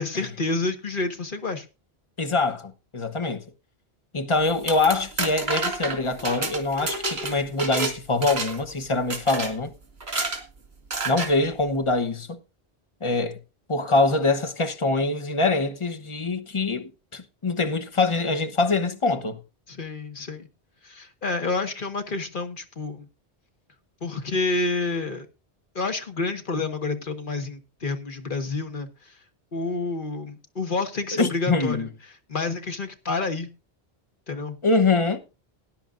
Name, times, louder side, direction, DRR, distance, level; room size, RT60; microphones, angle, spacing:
voice 1, 0.0-1.7 19.7-20.5 20.8-23.1 24.0-25.3 25.7-29.2 29.5-31.9 32.3-33.5 34.3-34.6, left 3 dB, 50° left, 1.6 m, -29 dB
voice 2, 2.2-3.4 4.1-9.7 11.0-12.4 13.0-13.4 13.7-19.4 31.2-31.9 34.6-35.2, left 3 dB, 30° left, 1.1 m, -24 dB
sound 1, 4.5-7.9 8.2-8.7 9.1-9.5 10.0-10.4 10.9-11.3, right 3 dB, 70° right, 2.4 m, -29 dB
19.0 x 10.0 x 2.6 m
omnidirectional pair, 1.1 m